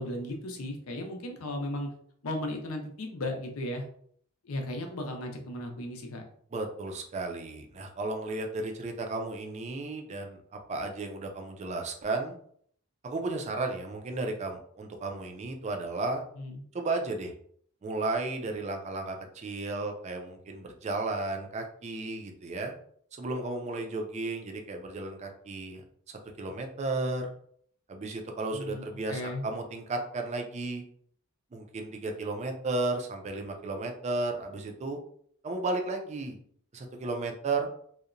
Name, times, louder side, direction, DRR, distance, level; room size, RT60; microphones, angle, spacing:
voice 1, 0.0-1.9 2.2-3.8 4.4-6.2 16.4-16.6 28.5-29.4, left 1 dB, 90° left, 3 dB, 0.6 m, -35 dB
voice 2, 6.5-12.4 13.0-16.2 16.7-17.3 17.8-22.7 23.2-25.8 26.4-27.3 27.9-30.8 31.5-35.0 35.4-36.4 36.7-37.7, right 2 dB, 30° right, 3 dB, 0.4 m, -34 dB
2.8 x 2.1 x 2.5 m, 0.62 s
head